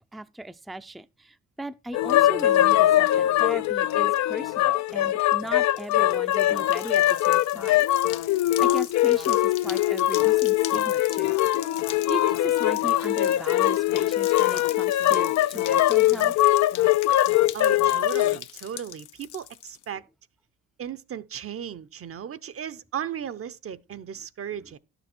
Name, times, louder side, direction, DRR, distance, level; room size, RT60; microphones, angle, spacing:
voice 1, 0.1-7.8 8.6-11.4 12.1-16.5, right 1 dB, ahead, 0.5 m, -38 dB
sound 1, 1.9-18.4, left 14 dB, 65° left, 0.5 m, -22 dB
sound 2, 5.6-19.9, left 12 dB, 85° left, 0.8 m, -41 dB
voice 2, 17.5-20.0 20.8-24.8, right 9 dB, 50° right, 0.7 m, -36 dB
12.0 x 6.9 x 4.4 m
cardioid pair, 90°, 30 cm